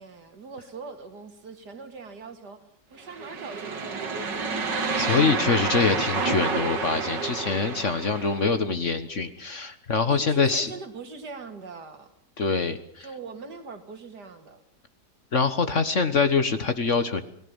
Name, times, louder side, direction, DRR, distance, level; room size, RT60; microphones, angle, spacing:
voice 1, 0.0-2.6 2.9-4.3 10.1-12.1 13.0-14.6, right 4 dB, 70° right, 8 dB, 2.8 m, -41 dB
sound 1, 3.1-8.5, right 4 dB, 85° right, 2.8 m, -29 dB
voice 2, 5.0-10.7 12.4-13.1 15.3-17.2, left 4 dB, 45° left, 11 dB, 1.6 m, -24 dB
28.5 x 19.0 x 7.2 m, 0.62 s
omnidirectional pair, 1.9 m